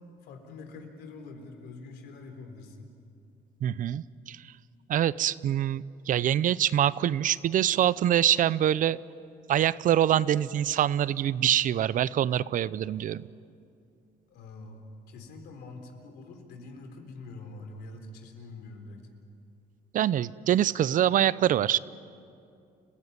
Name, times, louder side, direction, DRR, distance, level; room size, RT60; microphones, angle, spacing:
voice 1, 0.2-2.9 14.3-19.1, left 3 dB, 75° left, 5 dB, 3.8 m, -45 dB
voice 2, 3.6-4.4 4.9-9.0 9.5-13.3 19.9-21.8, right 11 dB, 50° right, 19 dB, 0.6 m, -25 dB
29.5 x 16.0 x 9.6 m, 2.5 s
cardioid pair, 110°, 17 cm